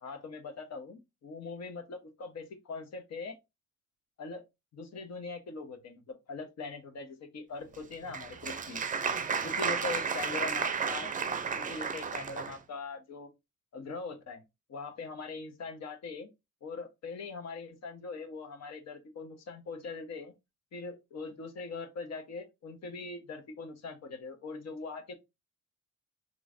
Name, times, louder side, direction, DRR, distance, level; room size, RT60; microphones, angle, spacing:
voice 1, 0.0-3.3 4.2-4.4 4.7-8.8 9.4-11.1 11.5-13.3 13.7-14.4 14.7-16.3 16.6-20.3 20.7-25.1, left 4 dB, 60° left, 1.2 m, -41 dB
Applause, 7.7-12.6, right 6 dB, 25° right, 0.5 m, -33 dB
3.8 x 3.1 x 2.6 m
cardioid pair, 90°, 30 cm